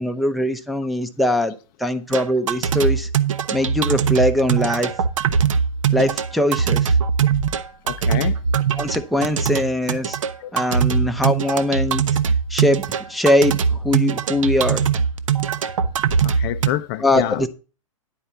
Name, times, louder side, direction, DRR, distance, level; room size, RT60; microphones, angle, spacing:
voice 1, 0.0-1.5 1.8-3.1 3.5-4.9 5.9-6.9 8.8-10.2 10.5-12.0 12.5-14.8 17.0-17.5, left 1 dB, ahead, 0.7 m, -21 dB
sound 1, 2.1-16.7, right 7 dB, 65° right, 0.8 m, -21 dB
voice 2, 7.9-8.4 10.4-10.5 16.2-17.5, left 14 dB, 40° left, 0.4 m, -27 dB
10.0 x 4.4 x 6.9 m
hypercardioid pair, 115°, 18 cm